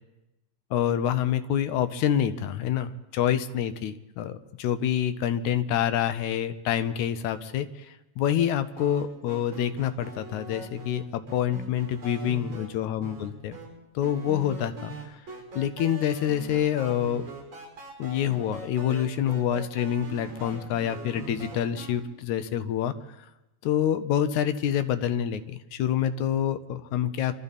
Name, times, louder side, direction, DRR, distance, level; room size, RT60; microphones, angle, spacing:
voice 1, 0.7-7.7 8.2-13.5 14.0-14.9 15.6-17.2 18.0-22.9 23.6-27.4, left 10 dB, 75° left, 10 dB, 1.9 m, -27 dB
sound 1, 8.8-12.7 13.0-13.6 14.0-21.9, right 1 dB, 35° right, 6.1 m, -42 dB
25.0 x 13.0 x 4.1 m, 0.98 s
omnidirectional pair, 3.8 m